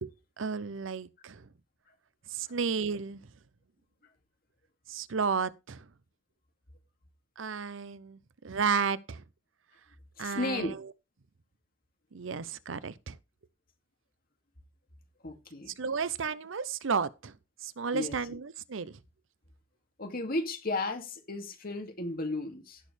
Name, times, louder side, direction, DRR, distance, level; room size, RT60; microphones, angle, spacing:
voice 1, 0.0-1.5 2.3-3.2 4.9-5.8 7.4-8.2 8.4-9.2 10.2-10.8 12.1-13.2 15.8-17.3 17.6-19.0, right 5 dB, 80° right, 0.7 m, -33 dB
voice 2, 10.2-10.7 15.2-15.7 17.9-18.2 20.0-22.8, left 2 dB, 50° left, 2.4 m, -34 dB
17.0 x 6.4 x 3.4 m
head